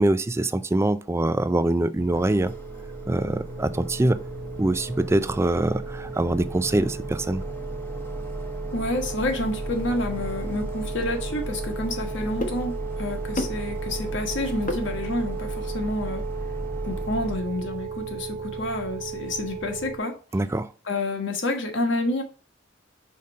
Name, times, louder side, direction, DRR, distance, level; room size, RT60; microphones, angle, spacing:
voice 1, 0.0-2.5 3.1-4.2 4.6-7.4 20.3-20.7, right 1 dB, 15° right, 0.4 m, -24 dB
sound 1, 2.0-20.0, right 5 dB, 35° right, 1.3 m, -36 dB
sound 2, 2.1-17.4, equal, 10° left, 0.9 m, -36 dB
voice 2, 8.7-16.2 16.8-20.1 20.9-22.2, left 2 dB, 70° left, 1.4 m, -29 dB
sound 3, 10.4-15.5, left 1 dB, 45° left, 1.0 m, -38 dB
5.2 x 4.1 x 5.2 m
head